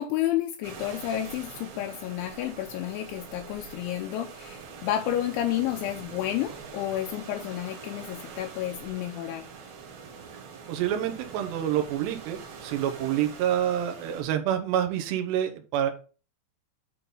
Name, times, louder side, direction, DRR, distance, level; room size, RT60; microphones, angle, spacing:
voice 1, 0.0-9.5, left 12 dB, 85° left, 4 dB, 2.8 m, -31 dB
sound 1, 0.6-14.2, right 5 dB, 60° right, 4.0 m, -44 dB
voice 2, 10.7-15.9, right 10 dB, 75° right, 6 dB, 2.6 m, -27 dB
10.0 x 3.9 x 5.4 m, 0.37 s
omnidirectional pair, 5.8 m